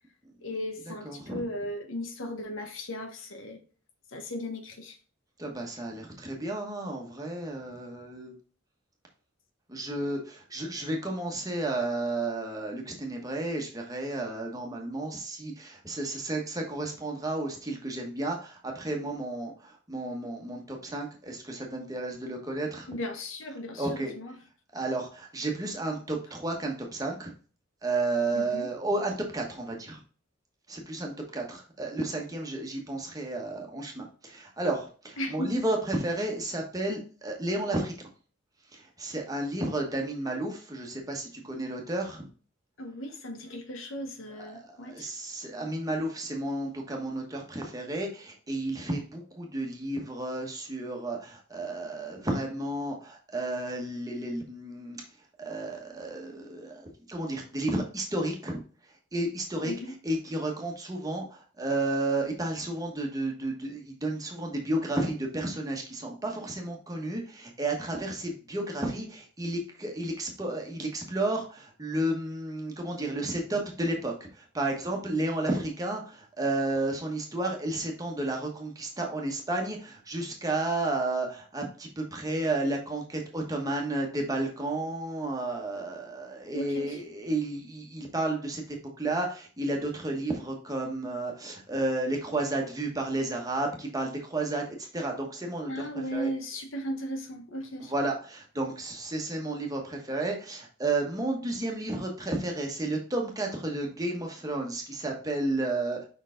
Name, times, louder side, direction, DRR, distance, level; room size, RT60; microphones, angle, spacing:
voice 1, 0.4-3.6 4.1-5.0 22.9-24.3 28.3-28.7 35.2-35.6 42.8-45.1 59.6-59.9 86.5-87.0 95.6-97.9, equal, 70° left, 1.0 m, -36 dB
voice 2, 1.0-1.4 5.4-8.3 9.7-22.9 23.8-24.1 24.7-27.3 27.8-30.0 30.7-37.9 38.7-42.3 44.4-55.0 55.4-58.6 59.1-59.7 60.0-95.8 96.1-96.3 97.9-106.0, right 2 dB, 15° right, 1.2 m, -32 dB
5.5 x 4.6 x 3.8 m
head